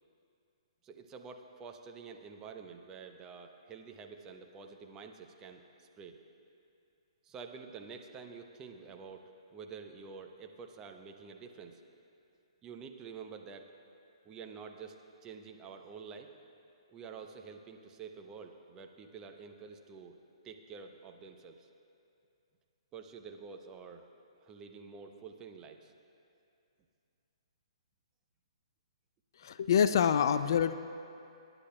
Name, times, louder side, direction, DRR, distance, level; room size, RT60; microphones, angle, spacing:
voice 1, 0.8-6.2 7.2-11.8 12.6-13.7 14.2-16.3 16.9-20.2 20.4-21.7 22.9-24.1 24.4-25.9, right 5 dB, 20° right, 4 dB, 0.7 m, -48 dB
voice 2, 29.4-30.7, left 8 dB, 45° left, 12 dB, 0.3 m, -26 dB
26.0 x 9.9 x 2.2 m, 2.6 s
figure-of-eight pair, 125°, 3 cm